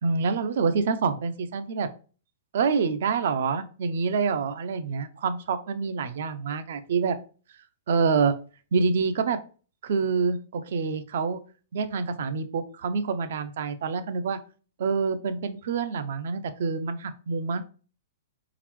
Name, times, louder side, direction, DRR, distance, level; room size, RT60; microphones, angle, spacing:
voice 1, 0.0-1.9 2.5-7.2 7.9-8.4 8.7-9.4 9.8-11.4 11.7-14.4 14.8-17.6, right 5 dB, 55° right, 10 dB, 0.5 m, -26 dB
4.1 x 3.9 x 3.0 m, 0.38 s
hypercardioid pair, 175°, 0 cm